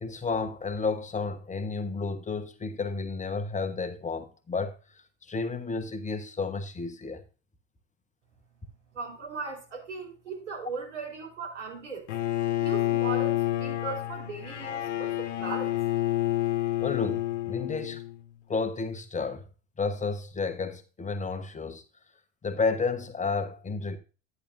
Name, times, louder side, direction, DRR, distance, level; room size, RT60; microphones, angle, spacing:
voice 1, 0.0-7.2 16.8-18.0 18.5-19.4 19.8-21.8 22.4-24.0, left 4 dB, 20° left, 1.2 m, -31 dB
voice 2, 8.9-12.1 12.6-15.8, right 4 dB, 80° right, 4.3 m, -38 dB
Bowed string instrument, 12.1-18.2, left 14 dB, 80° left, 0.8 m, -29 dB
10.0 x 9.8 x 2.7 m
hypercardioid pair, 75°, 35 cm